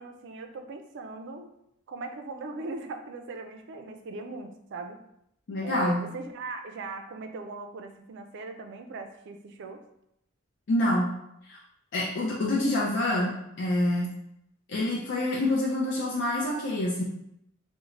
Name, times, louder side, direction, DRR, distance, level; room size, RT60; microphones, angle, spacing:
voice 1, 0.0-1.5 1.9-5.0 5.6-9.8, right 3 dB, 60° right, 6 dB, 0.4 m, -39 dB
voice 2, 5.5-6.0 10.7-11.1 11.5-11.6 11.9-14.1 14.7-17.0, left 1 dB, 60° left, -4 dB, 0.5 m, -26 dB
3.6 x 2.1 x 3.1 m, 0.79 s
head